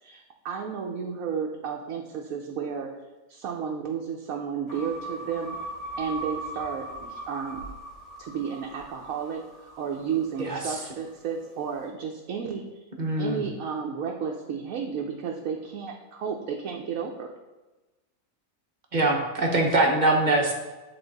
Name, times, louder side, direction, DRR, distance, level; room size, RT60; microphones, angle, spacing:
voice 1, 0.0-2.9 3.3-5.6 6.0-7.6 8.2-12.6 13.2-17.3, right 6 dB, 75° right, 0 dB, 1.1 m, -32 dB
sound 1, 4.7-11.0, right 2 dB, 55° left, 3.2 m, -39 dB
voice 2, 13.0-13.4 18.9-20.5, right 2 dB, 35° right, 1 dB, 1.0 m, -23 dB
9.8 x 4.0 x 4.0 m, 1.1 s
omnidirectional pair, 1.5 m